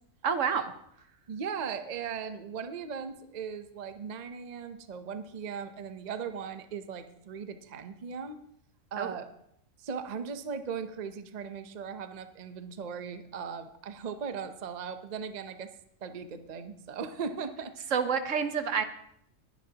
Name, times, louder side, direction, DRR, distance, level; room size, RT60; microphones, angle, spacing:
voice 1, 0.2-0.6 9.0-9.1 17.9-18.8, right 6 dB, 70° right, 9 dB, 1.3 m, -28 dB
voice 2, 1.3-8.4 8.9-9.2 9.8-15.7 16.0-17.7, right 6 dB, 40° right, 9 dB, 0.7 m, -38 dB
19.5 x 10.5 x 2.9 m, 0.72 s
omnidirectional pair, 1.4 m